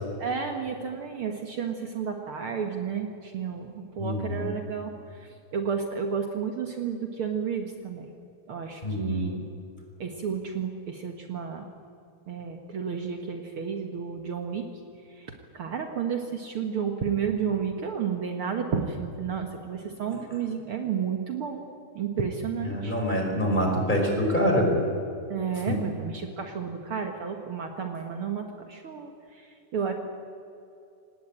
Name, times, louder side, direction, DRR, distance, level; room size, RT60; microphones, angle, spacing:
voice 1, 0.2-8.1 8.5-9.5 10.0-11.6 12.3-14.7 15.1-21.6 21.9-23.0 25.3-29.9, right 6 dB, 80° right, 4 dB, 1.2 m, -32 dB
voice 2, 4.0-4.5 8.8-9.3 22.6-24.8 25.7-25.8, equal, 10° left, 0 dB, 4.8 m, -25 dB
27.0 x 19.0 x 8.8 m, 2.7 s
omnidirectional pair, 4.7 m